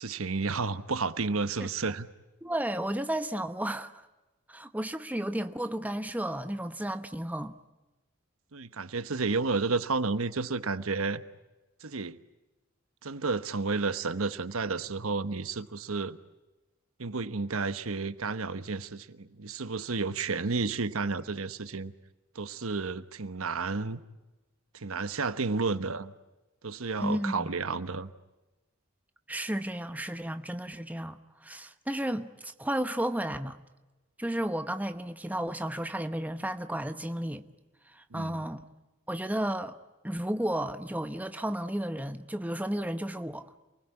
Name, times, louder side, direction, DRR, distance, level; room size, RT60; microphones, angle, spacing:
voice 1, 0.0-2.1 8.5-11.2 11.8-12.2 13.0-16.2 17.0-21.9 22.3-24.0 24.7-26.1 26.6-28.1 38.1-38.4, right 4 dB, 75° right, 1.1 m, -31 dB
voice 2, 2.4-4.1 4.5-7.5 27.0-27.6 29.3-33.6 34.2-37.4 37.9-38.6 39.1-39.8 40.0-43.6, right 1 dB, 5° right, 1.0 m, -33 dB
29.0 x 20.0 x 9.8 m
head